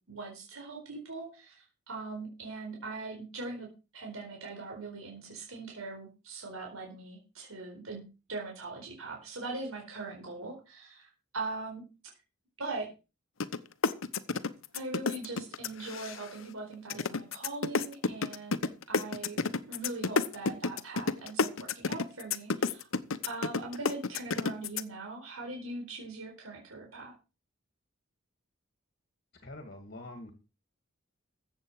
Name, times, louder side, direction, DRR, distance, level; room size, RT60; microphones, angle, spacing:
voice 1, 0.1-3.7 3.9-11.8 12.6-12.9 14.7-19.4 19.7-22.9 23.3-27.1, right 3 dB, 90° right, 0 dB, 4.3 m, -41 dB
sound 1, 13.4-13.6 13.8-16.4 16.9-24.8, left 4 dB, 75° left, 0.9 m, -30 dB
voice 2, 29.4-30.3, left 1 dB, 50° left, 6 dB, 2.2 m, -45 dB
14.5 x 8.1 x 4.8 m, 0.31 s
head